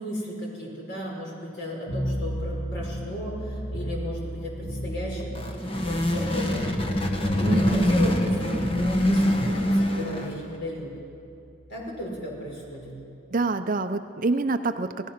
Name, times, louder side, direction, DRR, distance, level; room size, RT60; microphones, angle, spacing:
voice 1, 0.0-6.7 7.2-10.9 11.7-13.0, equal, 55° left, -2 dB, 5.3 m, -35 dB
sound 1, 1.9-13.0, equal, 85° left, 3.3 m, -36 dB
sound 2, 5.2-10.5, equal, 25° left, 1.4 m, -24 dB
voice 2, 7.4-7.9 13.3-15.1, right 3 dB, 40° right, 9 dB, 0.6 m, -26 dB
26.5 x 17.0 x 5.9 m, 2.6 s
head